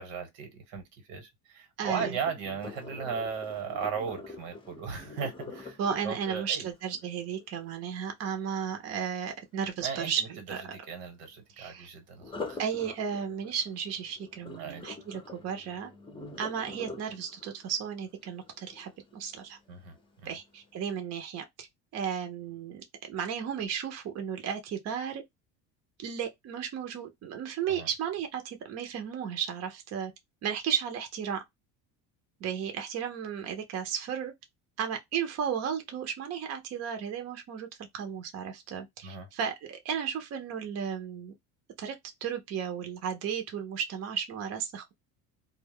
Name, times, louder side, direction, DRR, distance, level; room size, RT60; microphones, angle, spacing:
voice 1, 0.0-6.7 9.8-10.3 10.7-12.6 14.6-14.8 19.7-20.3 27.7-27.9 39.0-39.3, right 6 dB, 85° right, 1.2 m, -37 dB
Sink (filling or washing), 1.8-7.8 12.2-19.2 19.7-20.0 20.5-20.6, left 3 dB, 15° left, 0.6 m, -44 dB
voice 2, 1.8-2.2 5.8-10.2 10.5-10.6 11.6-11.9 12.6-15.9 16.4-19.6 20.2-21.7 21.9-25.2 26.0-30.1 30.4-31.4 32.4-34.3 34.8-37.7 37.9-41.3 41.8-41.9 42.2-44.9, right 8 dB, 45° right, 0.7 m, -34 dB
2.2 x 2.1 x 3.4 m
supercardioid pair, 110°, 37 cm